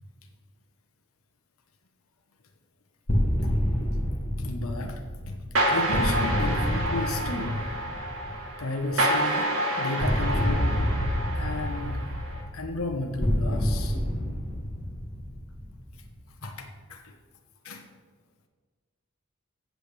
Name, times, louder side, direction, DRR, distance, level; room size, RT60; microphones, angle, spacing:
sound 1, 3.1-8.8 10.0-16.3, equal, 25° left, 1.6 m, -29 dB
voice 1, 4.4-7.6 8.6-10.8 11.3-12.1 12.5-14.0 16.4-17.1 17.6-17.8, left 2 dB, 85° left, 3 dB, 1.2 m, -33 dB
sound 2, 5.5-12.4, right 1 dB, 75° right, 2.1 m, -29 dB
sound 3, 10.2-14.1, left 1 dB, 55° left, 0.8 m, -33 dB
15.0 x 7.8 x 3.4 m, 1.5 s
head